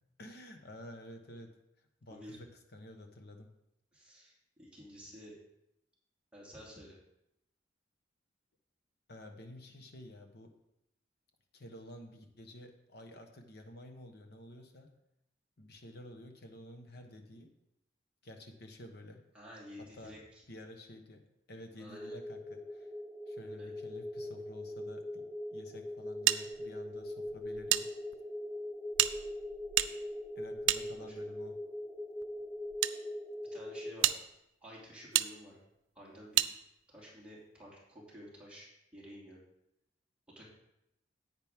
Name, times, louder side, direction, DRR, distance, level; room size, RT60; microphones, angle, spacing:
voice 1, 0.2-3.5 9.1-10.5 11.5-14.9 15.6-17.5 18.2-19.2 19.8-20.2 20.5-21.2 21.5-22.9 23.3-27.9 30.3-31.6, left 1 dB, 60° left, 5 dB, 1.2 m, -51 dB
voice 2, 3.9-5.3 6.3-6.9 19.3-20.4 21.8-22.1 23.6-23.7 31.2-31.3 33.5-34.2 34.6-35.6 35.9-36.4 36.9-39.4 40.4-40.5, equal, 5° right, -6 dB, 2.7 m, -51 dB
sound 1, 21.9-33.9, left 1 dB, 10° left, 0.5 m, -42 dB
sound 2, 26.3-27.8 28.1-28.2 28.9-31.4 32.2-32.9 33.5-33.6 34.0-34.2 35.1-35.3 36.3-36.5, right 14 dB, 85° right, 0.4 m, -31 dB
10.5 x 8.8 x 3.6 m, 0.83 s
head